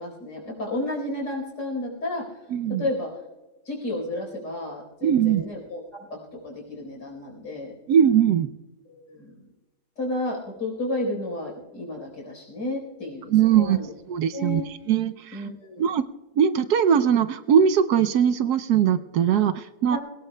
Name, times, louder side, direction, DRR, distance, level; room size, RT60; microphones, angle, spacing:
voice 1, 0.0-2.2 2.8-3.1 3.7-7.7 8.9-9.3 10.0-13.9 14.3-14.7 15.3-15.8 19.9-20.0, left 1 dB, 80° left, 0 dB, 4.8 m, -32 dB
voice 2, 2.5-2.9 5.0-5.4 7.9-8.5 13.3-13.8 14.1-14.6 14.9-15.4 15.8-16.0 16.3-20.0, right 8 dB, 70° right, 11 dB, 1.1 m, -20 dB
22.5 x 18.0 x 2.2 m, 1.1 s
omnidirectional pair, 1.9 m